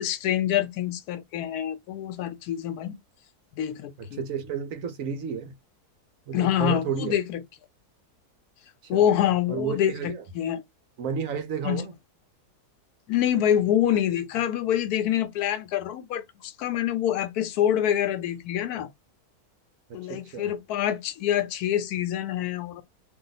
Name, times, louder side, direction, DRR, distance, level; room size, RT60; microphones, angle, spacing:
voice 1, 0.0-3.0 3.5-4.2 6.3-7.4 8.9-10.6 11.6-11.8 13.1-18.9 19.9-22.8, left 10 dB, 80° left, 1.1 m, -26 dB
voice 2, 4.0-5.5 6.3-7.2 8.9-9.0 9.5-10.2 11.0-11.9 20.1-20.5, right 6 dB, 65° right, 1.0 m, -31 dB
2.7 x 2.5 x 3.9 m
omnidirectional pair, 1.7 m